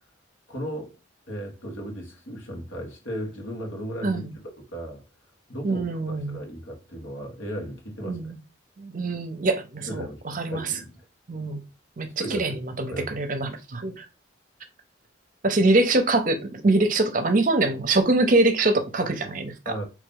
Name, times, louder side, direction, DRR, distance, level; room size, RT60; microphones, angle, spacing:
voice 1, 0.5-1.0 1.3-5.0 5.5-8.3 9.9-11.0 12.2-12.6 12.9-13.2 19.7-19.8, equal, 85° left, 1.6 m, -36 dB
voice 2, 4.0-4.3 5.6-6.4 8.0-8.4 8.8-10.7 11.3-11.6 12.0-14.1 15.4-19.7, right 2 dB, 40° right, 0.6 m, -24 dB
4.1 x 3.1 x 3.7 m
head